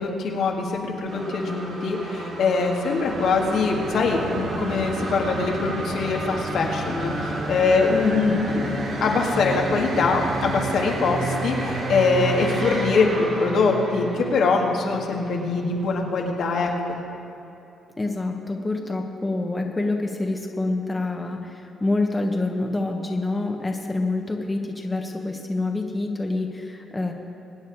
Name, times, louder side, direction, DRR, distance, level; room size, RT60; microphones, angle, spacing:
voice 1, 0.0-17.0, left 4 dB, 70° left, 0 dB, 2.0 m, -23 dB
sound 1, 1.1-16.0, right 2 dB, 65° right, 3.4 m, -32 dB
sound 2, 3.0-13.4, right 3 dB, 50° right, 1.4 m, -35 dB
voice 2, 8.0-8.6 18.0-27.1, left 2 dB, 15° left, 2 dB, 1.4 m, -27 dB
23.5 x 9.1 x 4.9 m, 2.9 s
cardioid pair, 90°, 0 cm